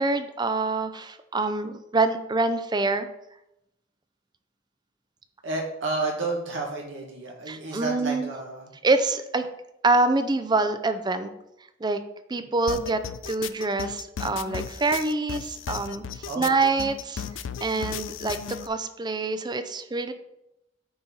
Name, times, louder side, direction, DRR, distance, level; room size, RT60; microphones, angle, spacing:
voice 1, 0.0-3.1 7.5-8.3 8.8-9.5 9.8-11.3 11.8-12.0 12.3-13.0 13.3-17.2 17.6-20.1, right 3 dB, 25° right, 10 dB, 0.5 m, -25 dB
voice 2, 5.4-8.7 16.2-16.8, right 3 dB, 85° right, -1 dB, 2.0 m, -31 dB
sound 1, 12.7-18.7, left 8 dB, 90° left, 0.4 m, -35 dB
9.5 x 4.3 x 4.0 m, 0.86 s
head